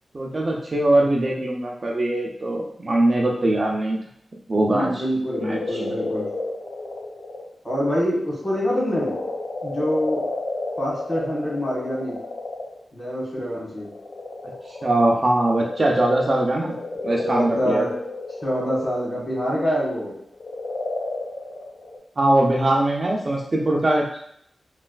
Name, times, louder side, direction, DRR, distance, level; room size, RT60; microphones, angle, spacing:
voice 1, 0.1-4.0 4.5-5.0 5.4-5.8 14.8-16.8 17.0-17.9 22.2-24.0, right 1 dB, 35° right, -1 dB, 0.4 m, -21 dB
voice 2, 4.6-6.3 7.6-9.2 9.6-10.2 10.8-12.2 12.9-13.9 17.2-17.9 18.4-20.1, equal, 30° left, -5 dB, 1.3 m, -25 dB
sound 1, 5.3-7.5 7.9-12.8 13.6-19.8 20.3-22.0, left 2 dB, 70° left, 0.6 m, -32 dB
3.1 x 2.3 x 2.3 m, 0.71 s
wide cardioid pair, 110°, 0 cm